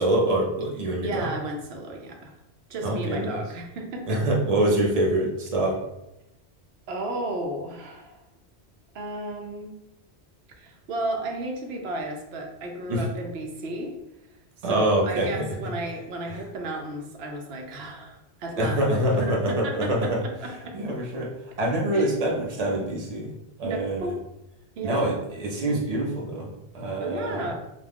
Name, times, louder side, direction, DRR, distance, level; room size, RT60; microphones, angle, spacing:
voice 1, 0.0-1.3 2.8-3.4 4.1-5.8 12.9-13.0 14.6-15.4 16.3-16.4 18.6-20.2 20.7-21.3 21.6-23.3 23.6-24.1 24.8-27.5, right 1 dB, 45° right, -2 dB, 0.6 m, -25 dB
voice 2, 1.0-2.3 2.7-4.2 6.9-8.2 8.9-9.7 10.6-14.0 14.6-18.8 19.2-20.8 21.9-22.1 23.6-24.1 24.8-25.2 27.0-27.5, right 2 dB, 75° right, 2 dB, 0.8 m, -33 dB
2.4 x 2.2 x 3.3 m, 0.89 s
omnidirectional pair, 1.1 m